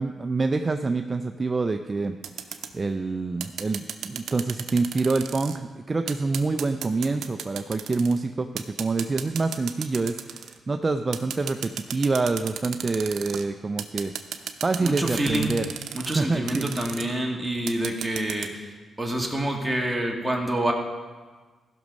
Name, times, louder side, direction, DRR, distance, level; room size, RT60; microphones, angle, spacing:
voice 1, 0.0-2.1 2.4-14.1 14.4-15.7 16.0-16.7 17.0-17.1, right 3 dB, 30° right, 7 dB, 0.5 m, -26 dB
sound 1, 2.2-2.7 3.4-5.6 6.1-8.2 8.6-10.6 11.1-13.4 13.8-16.2 16.5-17.0 17.7-18.5, right 9 dB, 85° right, 0.7 m, -34 dB
voice 2, 14.8-15.6 15.9-18.7 19.0-20.7, right 1 dB, 10° right, 0 dB, 1.9 m, -27 dB
15.0 x 6.3 x 5.3 m, 1.4 s
cardioid pair, 85°, 0 cm